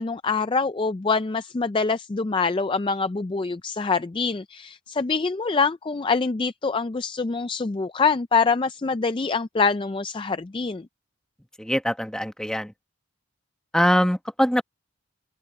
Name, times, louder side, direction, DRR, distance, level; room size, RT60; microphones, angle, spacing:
voice 1, 0.0-10.8, left 4 dB, 25° left, 0.3 m, -25 dB
voice 2, 11.6-12.7 13.7-14.6, equal, 5° left, 1.0 m, -22 dB
open air
head